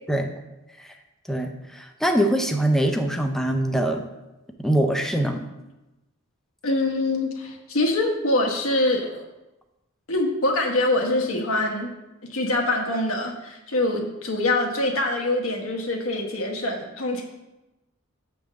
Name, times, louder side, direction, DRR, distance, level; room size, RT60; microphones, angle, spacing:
voice 1, 1.3-4.0 4.6-5.4, right 1 dB, ahead, 4 dB, 0.5 m, -23 dB
voice 2, 6.6-9.2 10.1-11.9 12.3-17.2, left 2 dB, 75° left, 2 dB, 1.1 m, -24 dB
7.0 x 3.5 x 6.2 m, 1.0 s
head